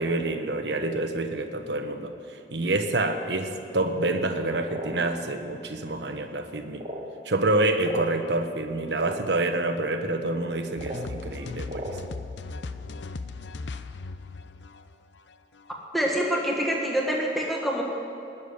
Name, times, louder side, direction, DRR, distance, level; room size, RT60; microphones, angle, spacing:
voice 1, 0.0-2.1 2.5-6.8 7.2-11.9, right 2 dB, 75° right, 5 dB, 1.2 m, -27 dB
sound 1, 4.6-4.9 5.8-5.9 6.7-7.1 7.8-8.1 8.9-9.2 10.7-11.1 11.7-12.0, right 1 dB, 35° right, 1.6 m, -36 dB
sound 2, 10.8-15.7, left 3 dB, 85° left, 0.6 m, -38 dB
voice 2, 15.9-17.8, equal, ahead, -2 dB, 1.5 m, -26 dB
19.5 x 7.3 x 9.6 m, 2.9 s
head